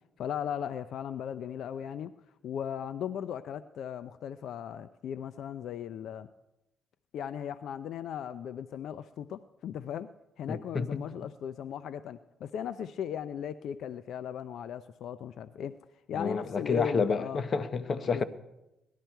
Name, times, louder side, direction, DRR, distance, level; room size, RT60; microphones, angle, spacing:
voice 1, 0.2-2.1 2.4-6.3 7.1-10.1 10.4-15.7 16.1-17.4 18.0-18.2, left 9 dB, 75° left, 0.4 m, -37 dB
voice 2, 10.5-11.0 16.1-18.2, left 4 dB, 45° left, 0.9 m, -30 dB
18.5 x 12.0 x 4.6 m
cardioid pair, 90°, 0 cm